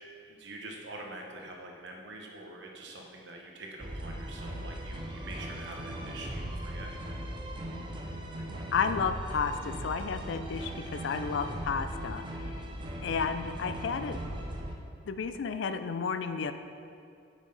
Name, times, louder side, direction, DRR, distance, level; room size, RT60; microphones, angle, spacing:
voice 1, 0.3-6.9, right 2 dB, 65° right, 0 dB, 1.0 m, -45 dB
sound 1, 3.8-14.7, right 1 dB, 25° right, 0.5 m, -39 dB
voice 2, 8.7-12.7 13.0-14.2 15.0-16.5, left 5 dB, 70° left, 9 dB, 0.4 m, -32 dB
6.7 x 6.2 x 4.0 m, 2.5 s
head